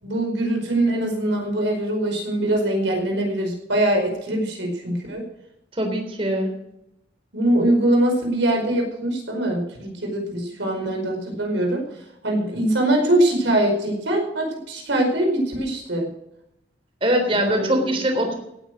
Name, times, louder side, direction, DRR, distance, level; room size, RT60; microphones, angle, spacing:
voice 1, 0.0-5.2 7.3-11.8 12.2-16.1 17.3-18.0, right 1 dB, 85° right, 1 dB, 5.0 m, -22 dB
voice 2, 5.7-6.6 17.0-18.4, right 1 dB, 30° right, 5 dB, 3.5 m, -22 dB
17.0 x 9.3 x 6.5 m, 0.83 s
head